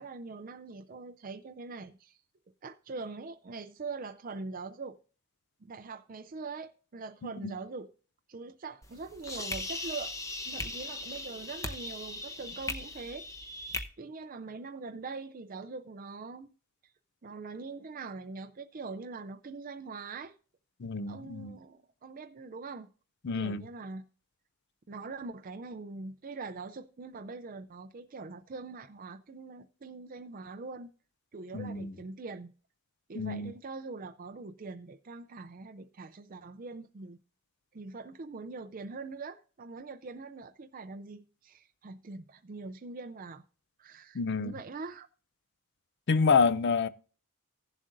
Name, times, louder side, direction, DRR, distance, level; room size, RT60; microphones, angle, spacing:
voice 1, 0.0-2.2 2.6-5.0 5.6-7.9 8.3-10.1 10.4-13.6 14.0-16.5 17.2-20.4 21.1-22.9 23.3-24.0 24.9-30.9 31.3-32.5 33.1-37.2 37.7-43.4 43.8-45.1, right 3 dB, 40° right, 0.5 m, -43 dB
sound 1, 8.8-13.8, left 2 dB, 15° left, 0.8 m, -38 dB
voice 2, 20.8-21.6 23.2-23.6 31.5-31.9 33.2-33.5 44.1-44.5 46.1-46.9, left 5 dB, 55° left, 0.5 m, -27 dB
16.5 x 7.4 x 2.6 m
head